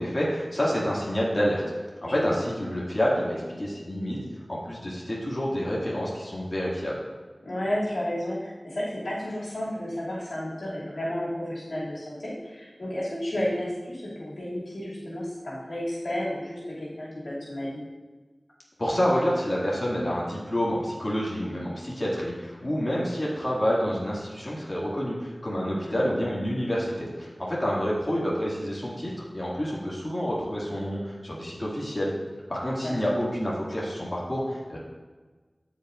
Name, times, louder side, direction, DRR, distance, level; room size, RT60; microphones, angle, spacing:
voice 1, 0.0-1.6 2.0-4.2 4.5-7.0 18.8-32.1 32.5-34.8, equal, 40° left, -6 dB, 2.2 m, -28 dB
voice 2, 2.0-2.4 7.4-17.8 25.7-26.0 32.8-32.9, left 1 dB, 85° left, -8 dB, 2.6 m, -32 dB
15.0 x 5.2 x 2.6 m, 1.3 s
wide cardioid pair, 40°, 0 cm